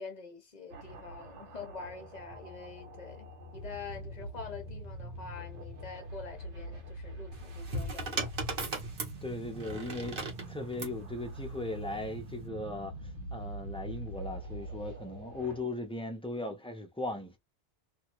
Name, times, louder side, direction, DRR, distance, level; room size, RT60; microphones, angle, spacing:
voice 1, 0.0-8.3, left 4 dB, 40° left, 0.8 m, -45 dB
sound 1, 0.7-15.6, right 1 dB, 80° right, 1.1 m, -44 dB
sound 2, 7.3-11.0 12.0-12.4, right 2 dB, 55° right, 1.1 m, -37 dB
voice 2, 9.2-12.9 13.3-17.4, left 2 dB, 5° left, 0.6 m, -38 dB
2.7 x 2.3 x 3.0 m
omnidirectional pair, 1.2 m